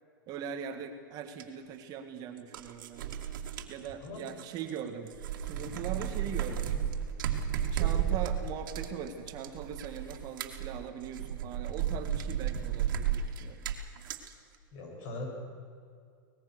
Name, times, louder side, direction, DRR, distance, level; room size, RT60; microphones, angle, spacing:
voice 1, 0.3-3.1 3.7-5.1 5.4-6.9 7.7-13.7, right 8 dB, 35° right, 6 dB, 1.7 m, -41 dB
sound 1, 1.4-1.5 2.4-4.8 5.1-14.3, right 9 dB, 70° right, 2.4 m, -33 dB
voice 2, 5.5-5.8 14.7-15.3, left 2 dB, 45° left, 1 dB, 7.4 m, -41 dB
24.0 x 19.5 x 6.5 m, 2.3 s
supercardioid pair, 145°, 11 cm